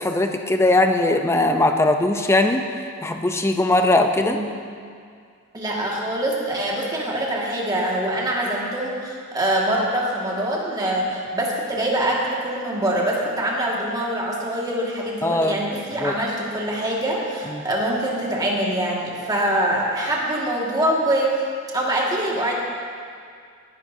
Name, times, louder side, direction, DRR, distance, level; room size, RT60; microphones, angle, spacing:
voice 1, 0.0-2.6 3.0-4.4 15.2-15.6 16.0-16.2 17.5-17.7, left 2 dB, 10° left, 5 dB, 0.6 m, -19 dB
voice 2, 4.1-4.5 5.5-21.3 21.7-22.5, right 1 dB, 20° right, -4 dB, 1.9 m, -24 dB
18.5 x 11.0 x 2.7 m, 2.2 s
head